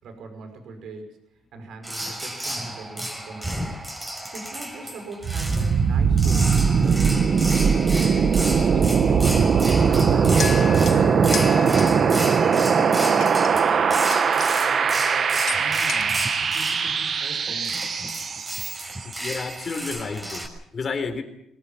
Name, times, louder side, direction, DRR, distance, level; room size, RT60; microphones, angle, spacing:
voice 1, 0.0-1.2 1.5-3.8 4.3-8.2 8.7-9.5 9.9-10.7 11.7-17.8, right 3 dB, 70° right, 6 dB, 5.7 m, -40 dB
sound 1, 1.8-20.5, right 1 dB, 15° right, 5.9 m, -33 dB
sound 2, 5.2-19.0, right 6 dB, 50° right, 1.4 m, -20 dB
sound 3, 10.4-12.4 12.9-13.5 14.1-14.7 15.0-15.2 15.5-16.0, left 8 dB, 60° left, 1.6 m, -34 dB
voice 2, 19.0-20.5 20.7-21.2, left 4 dB, 40° left, 5 dB, 4.1 m, -30 dB
23.5 x 19.0 x 7.5 m, 0.78 s
cardioid pair, 90°, 0 cm